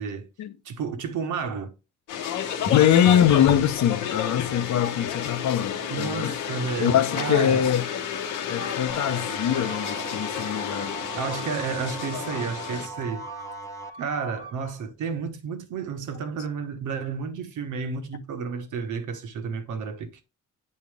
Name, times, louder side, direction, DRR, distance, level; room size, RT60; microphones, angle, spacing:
voice 1, 0.6-1.7 5.9-7.7 11.2-13.3 14.0-20.2, right 5 dB, 75° right, 1.4 m, -31 dB
sound 1, 2.1-12.9, left 8 dB, 85° left, 1.2 m, -31 dB
voice 2, 2.7-6.3 6.8-7.8 8.3-11.0, left 10 dB, 65° left, 0.8 m, -23 dB
sound 2, 6.1-6.8 7.2-7.8 8.5-14.8, left 1 dB, 50° left, 1.2 m, -46 dB
sound 3, 8.9-13.9, right 4 dB, 10° left, 0.9 m, -39 dB
7.7 x 4.3 x 3.4 m
cardioid pair, 90°, 30 cm